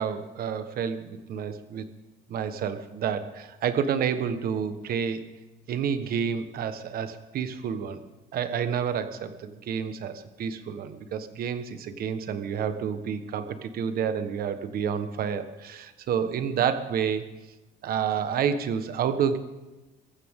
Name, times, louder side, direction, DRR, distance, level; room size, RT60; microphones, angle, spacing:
voice 1, 0.0-1.9 2.3-5.2 5.7-8.0 8.3-17.2 17.8-19.4, right 7 dB, 60° right, 10 dB, 1.4 m, -29 dB
24.0 x 14.5 x 3.8 m, 1.1 s
cardioid pair, 110°, 17 cm